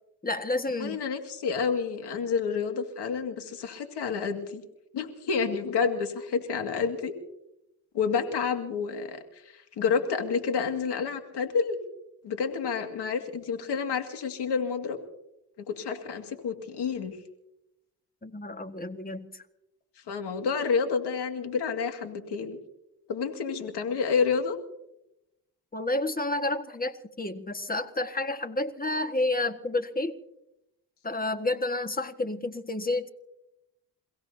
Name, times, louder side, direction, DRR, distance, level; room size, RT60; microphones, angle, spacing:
voice 1, 0.2-1.0 18.2-19.4 25.7-30.2 31.0-33.1, left 2 dB, 20° left, 9 dB, 1.6 m, -30 dB
voice 2, 0.8-4.6 4.9-7.1 7.9-11.8 12.2-15.0 15.6-17.2 20.1-22.6 23.1-24.6, left 5 dB, 80° left, 6 dB, 2.2 m, -29 dB
28.5 x 16.5 x 2.8 m, 0.88 s
cardioid pair, 60°, 40 cm